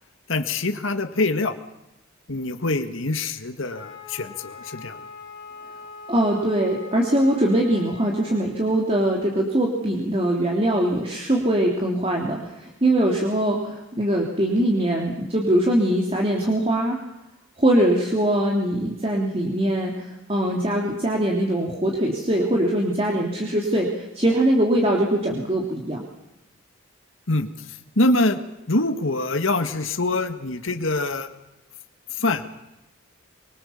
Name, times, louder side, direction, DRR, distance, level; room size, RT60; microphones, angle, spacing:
voice 1, 0.3-1.6 2.3-5.0 27.3-28.4 28.7-31.3 32.1-32.4, left 2 dB, 70° left, 7 dB, 1.9 m, -24 dB
Wind instrument woodwind instrument, 3.7-8.5, left 4 dB, 25° left, 3.9 m, -42 dB
voice 2, 6.1-17.0 17.6-26.0, right 1 dB, 25° right, 0 dB, 3.1 m, -22 dB
25.5 x 24.5 x 7.2 m, 0.92 s
head